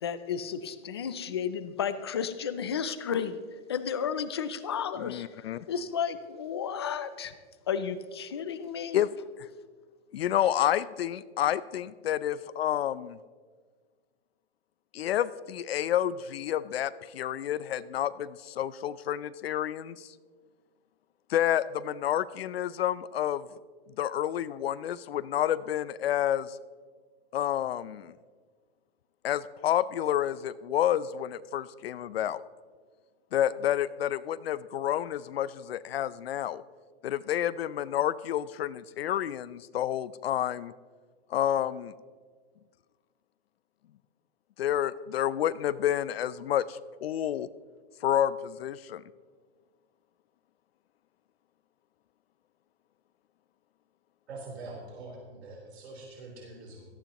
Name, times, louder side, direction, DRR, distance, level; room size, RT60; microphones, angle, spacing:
voice 1, 0.0-3.4 3.7-7.3 7.7-9.0, left 7 dB, 25° left, 12 dB, 0.4 m, -33 dB
voice 2, 5.0-5.7 8.9-9.1 10.1-13.2 14.9-20.1 21.3-23.5 24.0-26.6 27.3-28.1 29.2-32.4 33.3-36.6 37.0-40.7 41.3-41.9 44.6-47.5 48.0-49.0, left 11 dB, 70° left, 17 dB, 0.6 m, -29 dB
voice 3, 54.3-56.9, right 2 dB, 85° right, -2 dB, 3.9 m, -44 dB
17.5 x 14.5 x 3.0 m, 1.5 s
hypercardioid pair, 180°, 31 cm